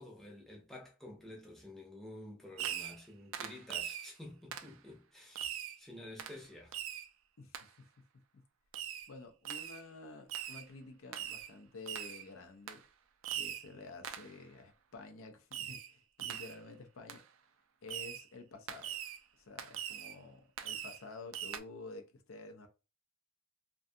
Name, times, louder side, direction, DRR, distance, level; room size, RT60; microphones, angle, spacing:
voice 1, 0.0-6.8, left 1 dB, ahead, 0.5 m, -51 dB
Fireworks, 2.6-3.1 3.3-4.1 4.5-4.7 5.4-5.8 6.2-6.4 6.7-7.1 7.5-7.7 8.7-9.1 9.5-9.8 10.3-10.7 11.1-11.5 11.9-12.2 12.7-12.8 13.2-13.7 14.0-14.3 15.5-15.9 16.2-16.6 17.1-17.2 17.9-18.3 18.7-19.2 19.6-20.2 20.6-21.0 21.3-21.6, right 10 dB, 70° right, 0.3 m, -41 dB
voice 2, 7.4-7.9 8.3-8.4 9.1-12.8 13.3-17.2 17.8-19.0 19.3-22.7, left 3 dB, 80° left, 0.5 m, -51 dB
2.4 x 2.3 x 2.6 m
head